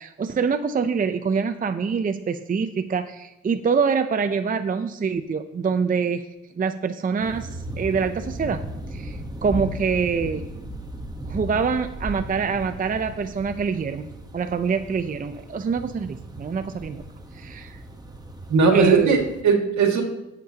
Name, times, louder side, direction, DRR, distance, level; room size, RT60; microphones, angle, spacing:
voice 1, 0.0-6.3 6.6-8.6 8.9-10.5 11.3-17.0 17.3-17.8 18.7-19.2, right 5 dB, 30° right, 9 dB, 0.6 m, -25 dB
sound 1, 7.2-19.4, right 1 dB, 15° right, 1.1 m, -36 dB
voice 2, 18.5-20.0, right 4 dB, 70° right, 2 dB, 2.1 m, -18 dB
17.0 x 7.4 x 2.9 m, 0.95 s
cardioid pair, 90°, 30 cm